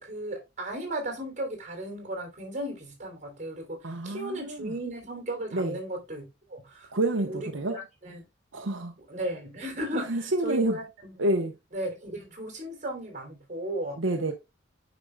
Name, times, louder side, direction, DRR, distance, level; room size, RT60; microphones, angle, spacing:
voice 1, 0.0-6.9 7.2-8.2 9.1-11.2 11.7-14.0, right 1 dB, 40° right, 3.1 m, -35 dB
voice 2, 3.8-4.7 5.5-5.8 6.9-7.8 8.5-8.9 9.9-10.8 11.2-11.5 14.0-14.3, right 2 dB, 85° right, 0.9 m, -28 dB
9.6 x 5.1 x 2.2 m
head